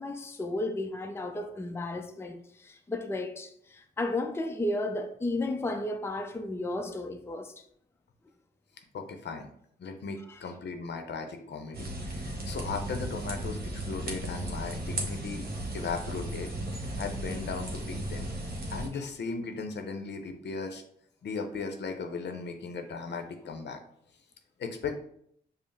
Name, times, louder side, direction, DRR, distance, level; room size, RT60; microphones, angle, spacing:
voice 1, 0.0-7.5 18.9-19.0, left 2 dB, 15° left, 0.4 m, -33 dB
voice 2, 8.9-9.5 9.8-15.4 15.7-16.5 17.0-18.3 18.7-20.8 21.2-23.8 24.6-24.9, left 4 dB, 65° left, 0.6 m, -37 dB
sound 1, 11.7-18.9, right 1 dB, 55° right, 1.0 m, -35 dB
5.2 x 2.0 x 3.3 m
cardioid pair, 70°, 19 cm